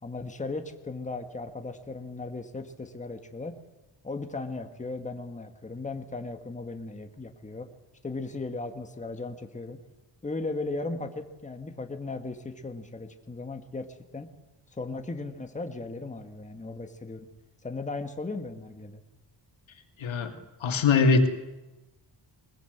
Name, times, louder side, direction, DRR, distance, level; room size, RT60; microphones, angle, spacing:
voice 1, 0.0-3.6 4.0-7.7 8.0-9.8 10.2-13.9 14.1-14.3 14.7-17.3 17.6-19.0, left 3 dB, 15° left, 6 dB, 1.6 m, -36 dB
voice 2, 20.0-20.3 20.6-21.3, left 4 dB, 80° left, 6 dB, 2.6 m, -21 dB
21.5 x 21.0 x 8.0 m, 1.0 s
wide cardioid pair, 145°, 46 cm